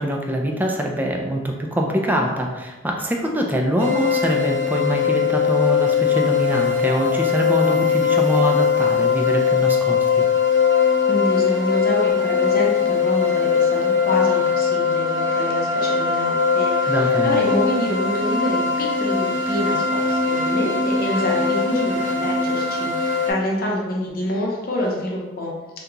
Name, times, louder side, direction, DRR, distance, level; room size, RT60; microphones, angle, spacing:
voice 1, 0.0-10.3 16.9-17.4, equal, 10° right, 1 dB, 0.3 m, -24 dB
sound 1, 3.8-23.3, left 6 dB, 70° right, 0.7 m, -20 dB
voice 2, 10.8-25.5, left 1 dB, 50° left, -2 dB, 0.7 m, -27 dB
2.9 x 2.2 x 3.7 m, 1.2 s
head